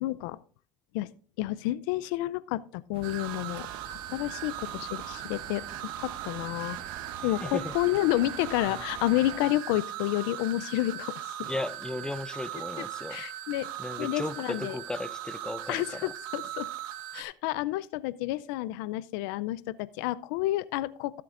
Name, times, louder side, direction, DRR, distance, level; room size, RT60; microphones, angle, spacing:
voice 1, 0.0-0.4 0.9-1.1 1.4-6.8 7.2-11.5 13.1-13.7 14.0-14.8 15.7-16.7 17.1-21.2, left 16 dB, 85° left, 0.5 m, -30 dB
sound 1, 2.9-9.4, right 9 dB, 65° right, 0.9 m, -45 dB
sound 2, 3.0-17.2, right 12 dB, 90° right, 1.0 m, -39 dB
voice 2, 7.2-7.7 8.7-8.8 11.4-13.3 13.8-16.1, left 2 dB, 5° left, 0.5 m, -36 dB
15.5 x 7.6 x 2.5 m
supercardioid pair, 100°, 11 cm